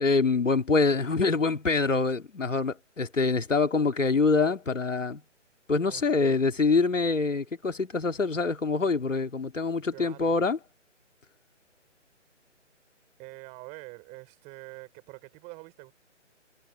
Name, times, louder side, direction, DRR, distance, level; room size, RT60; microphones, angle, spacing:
voice 1, 0.0-5.2 5.7-10.6, left 4 dB, 85° left, 2.4 m, -25 dB
voice 2, 5.9-6.6 9.9-10.4 13.2-15.9, right 26 dB, 20° right, 5.5 m, -46 dB
figure-of-eight pair, 150°, 37 cm